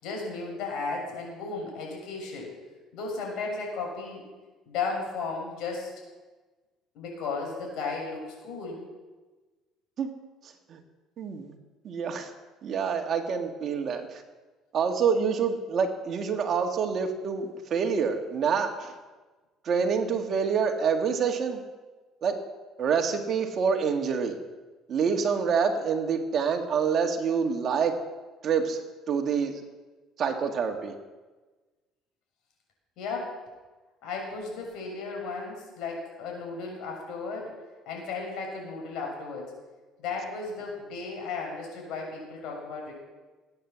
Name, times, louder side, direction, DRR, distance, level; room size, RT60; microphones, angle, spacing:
voice 1, 0.0-2.5 2.9-4.3 4.7-5.9 6.9-8.9 33.0-33.4 34.0-37.6 37.8-39.5 40.0-43.0, left 4 dB, 70° left, 0 dB, 6.7 m, -35 dB
voice 2, 11.2-11.5 11.8-12.3 12.6-14.2 14.7-18.9 19.6-21.6 22.2-22.3 22.8-24.4 24.9-28.0 28.4-29.6 30.2-30.9, right 6 dB, 45° right, 4 dB, 1.9 m, -27 dB
18.5 x 9.5 x 7.5 m, 1.3 s
cardioid pair, 120°, 0 cm